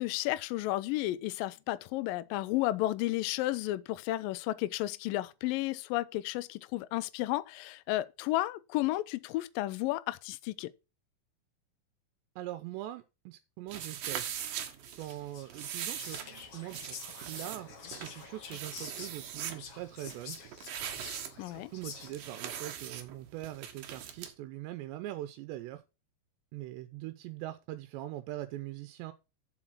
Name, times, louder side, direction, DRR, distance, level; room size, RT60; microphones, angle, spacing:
voice 1, 0.0-10.7 21.4-21.7, left 17 dB, 90° left, 2.0 m, -32 dB
voice 2, 12.4-14.2 15.0-16.2 16.5-17.0 17.3-20.4 21.5-25.8 26.5-29.1, right 15 dB, 85° right, 2.9 m, -42 dB
sound 1, 13.7-24.3, right 9 dB, 65° right, 2.7 m, -41 dB
Whispering, 14.8-22.4, left 6 dB, 55° left, 1.7 m, -48 dB
7.5 x 7.0 x 6.1 m
omnidirectional pair, 4.9 m